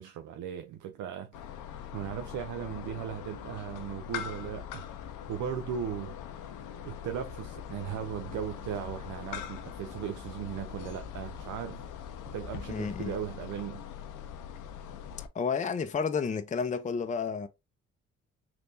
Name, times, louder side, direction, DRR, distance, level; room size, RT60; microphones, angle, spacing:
voice 1, 0.0-1.3 1.9-4.9 5.3-6.5 6.8-11.9 12.3-13.9, right 9 dB, 70° right, 0.5 m, -37 dB
sound 1, 1.3-15.3, left 9 dB, 80° left, 0.6 m, -42 dB
voice 2, 12.7-13.2 15.3-17.5, left 5 dB, 25° left, 0.5 m, -31 dB
3.4 x 2.8 x 2.6 m
supercardioid pair, 50°, 32 cm